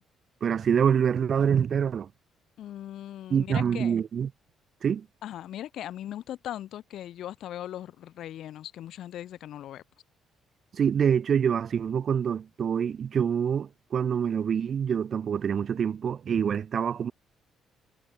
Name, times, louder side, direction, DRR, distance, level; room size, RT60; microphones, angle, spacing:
voice 1, 0.4-2.1 3.3-4.3 4.8-5.1 10.7-17.1, right 7 dB, 45° right, 0.5 m, -26 dB
voice 2, 2.6-4.0 5.2-9.8, left 12 dB, 70° left, 2.8 m, -39 dB
cardioid pair, 115°, 0 cm